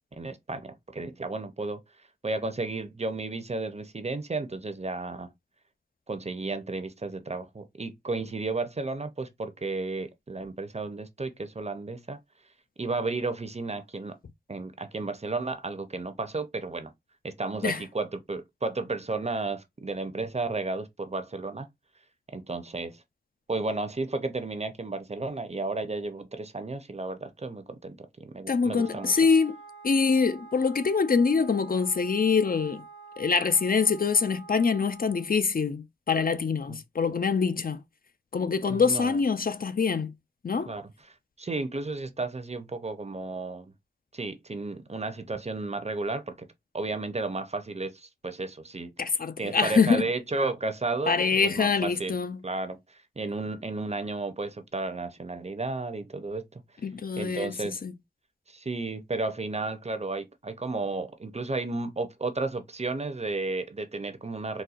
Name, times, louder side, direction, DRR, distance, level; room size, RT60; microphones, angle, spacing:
voice 1, 0.2-1.8 2.2-5.3 6.1-12.2 12.8-14.2 14.5-16.9 17.2-21.7 22.3-23.0 23.5-29.1 36.7-36.8 38.7-39.2 40.7-40.9 41.4-43.7 44.1-46.4 46.7-48.9 49.4-52.2 52.4-56.6 57.2-57.8 58.5-64.6, right 3 dB, 35° right, 0.6 m, -33 dB
voice 2, 28.5-29.5 29.8-32.8 33.2-37.8 38.3-40.1 40.4-40.7 49.0-50.0 51.1-52.4 56.8-57.9, left 5 dB, 50° left, 0.4 m, -25 dB
Wind instrument woodwind instrument, 28.7-35.3, right 4 dB, 85° left, 0.9 m, -48 dB
4.1 x 2.2 x 2.4 m
wide cardioid pair, 60°, 18 cm